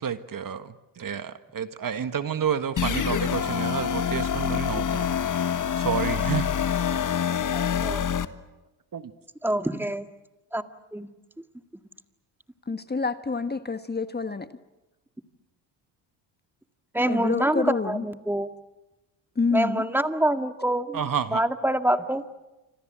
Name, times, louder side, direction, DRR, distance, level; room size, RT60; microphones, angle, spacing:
voice 1, 0.0-5.1 5.8-6.5 8.9-9.1 20.9-21.4, right 8 dB, 45° right, 10 dB, 1.6 m, -30 dB
sound 1, 2.8-8.3, left 8 dB, 40° left, 1.5 m, -26 dB
voice 2, 7.5-8.0 9.4-10.1 10.5-11.1 16.9-18.5 19.5-22.2, right 1 dB, 5° right, 7 dB, 1.9 m, -26 dB
voice 3, 12.7-14.5 17.1-18.1 19.3-19.8, left 4 dB, 20° left, 10 dB, 1.4 m, -27 dB
28.0 x 25.5 x 7.6 m, 1.0 s
supercardioid pair, 65°, 48 cm